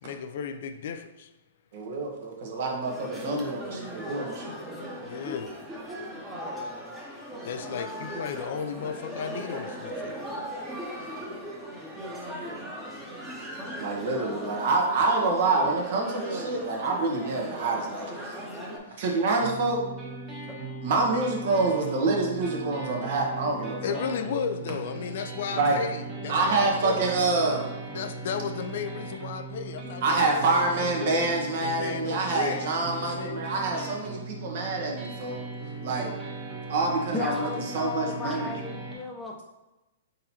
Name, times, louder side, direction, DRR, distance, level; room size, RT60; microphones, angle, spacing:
voice 1, 0.0-1.3 3.9-4.0 5.0-5.6 6.0-6.1 7.4-13.8 18.8-19.2 22.9-23.0 23.8-27.1 27.9-31.3 31.6-33.5, left 7 dB, 60° left, 0.4 m, -36 dB
voice 2, 1.7-4.5 13.8-18.4 19.0-19.8 20.8-24.0 25.6-25.8 26.3-27.7 30.0-35.4 35.8-36.1 36.7-37.5 37.7-38.5, right 3 dB, 60° right, 1.1 m, -27 dB
sound 1, 2.8-18.8, equal, 10° right, 1.0 m, -38 dB
sound 2, 19.4-39.0, right 3 dB, 25° right, 1.2 m, -38 dB
voice 3, 37.1-39.5, left 4 dB, 10° left, 0.6 m, -34 dB
4.3 x 3.8 x 2.8 m
hypercardioid pair, 135°, 0 cm